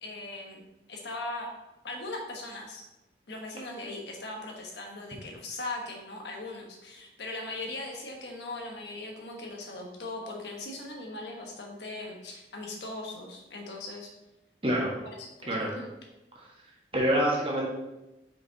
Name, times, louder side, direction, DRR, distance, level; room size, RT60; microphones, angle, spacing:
voice 1, 0.0-0.6 0.9-1.5 1.8-2.8 3.3-14.1 15.4-15.9, left 2 dB, 80° left, 1 dB, 1.2 m, -39 dB
voice 2, 16.9-17.7, right 1 dB, 30° right, -3 dB, 1.4 m, -26 dB
5.2 x 4.8 x 4.0 m, 0.97 s
head